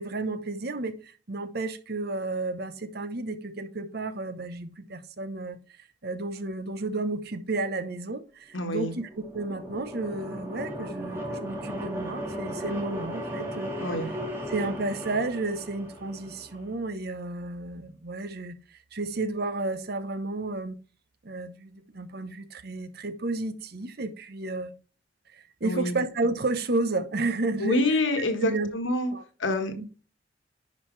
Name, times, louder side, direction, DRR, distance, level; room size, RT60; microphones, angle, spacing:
voice 1, 0.0-5.6 6.0-13.7 14.5-20.8 21.2-24.7 25.3-28.7 29.1-29.2 29.8-29.9, right 2 dB, 55° right, 0.9 m, -32 dB
voice 2, 8.5-8.9 13.8-14.1 25.6-26.0 27.6-29.1 29.4-29.7, left 2 dB, 90° left, 1.7 m, -27 dB
sound 1, 8.9-16.7, equal, 10° right, 2.1 m, -36 dB
10.5 x 5.0 x 3.2 m
head